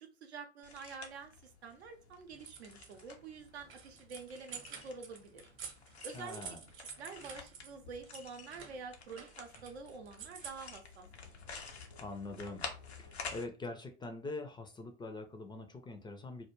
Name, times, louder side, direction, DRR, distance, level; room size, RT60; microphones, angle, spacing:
voice 1, 0.0-5.5 6.0-6.4 6.8-11.1, right 4 dB, 80° right, 0.6 m, -48 dB
sound 1, 0.6-13.5, left 5 dB, 90° left, 0.5 m, -50 dB
sound 2, 2.3-3.0 3.4-7.7 8.1-10.8, right 6 dB, 40° right, 0.7 m, -49 dB
voice 2, 6.1-6.6 12.0-12.7 13.0-16.5, left 2 dB, 15° left, 0.4 m, -44 dB
2.2 x 2.1 x 3.0 m
figure-of-eight pair, 65°, 32 cm